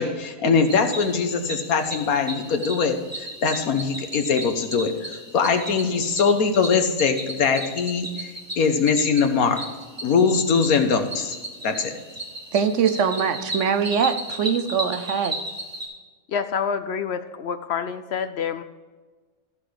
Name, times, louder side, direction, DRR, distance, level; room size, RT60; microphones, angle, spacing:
voice 1, 0.0-8.3 8.6-9.6 10.0-11.3 11.6-11.9, left 5 dB, 90° left, 6 dB, 1.6 m, -22 dB
Cricket, 0.7-15.9, right 1 dB, 20° right, 2.0 m, -35 dB
voice 2, 12.5-15.4, right 7 dB, 65° right, 9 dB, 1.0 m, -22 dB
voice 3, 16.3-18.6, left 7 dB, 60° left, 11 dB, 0.7 m, -27 dB
14.5 x 5.9 x 4.9 m, 1.3 s
omnidirectional pair, 1.5 m